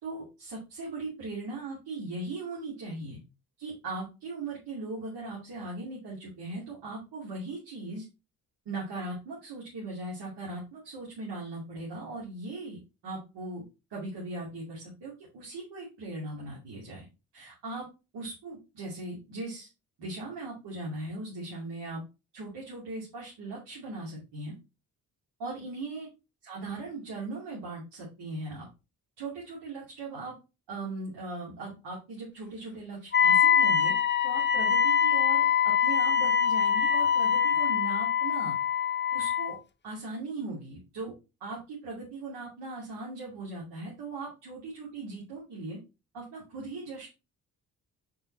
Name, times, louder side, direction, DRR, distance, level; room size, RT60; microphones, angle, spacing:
voice 1, 0.0-3.2 3.6-8.0 8.7-13.6 13.9-17.0 17.3-17.9 18.1-19.7 20.0-22.0 22.3-24.5 25.4-26.1 26.4-28.7 29.2-30.3 30.7-34.0 34.2-38.5 39.1-39.6 39.8-41.1 41.4-45.8 46.1-47.1, right 2 dB, 65° right, -4 dB, 2.7 m, -39 dB
Wind instrument woodwind instrument, 33.1-39.6, left 8 dB, 25° left, 0.7 m, -24 dB
6.3 x 4.8 x 4.2 m, 0.28 s
hypercardioid pair, 40°, 43 cm